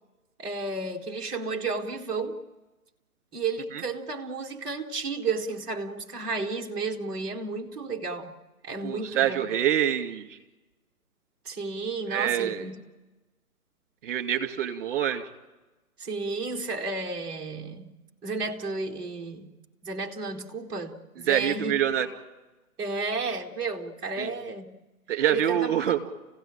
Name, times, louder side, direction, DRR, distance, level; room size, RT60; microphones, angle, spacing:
voice 1, 0.4-2.4 3.3-8.3 8.6-9.5 11.4-12.8 16.0-17.9 18.2-19.5 19.8-21.8 22.8-24.7 25.3-25.8, right 3 dB, 10° right, 1.4 m, -32 dB
voice 2, 8.8-10.4 12.1-12.7 14.0-15.2 21.3-22.1 24.2-24.3 25.1-26.0, right 10 dB, 35° right, 2.6 m, -26 dB
27.5 x 16.5 x 8.9 m
figure-of-eight pair, 140°, 45 cm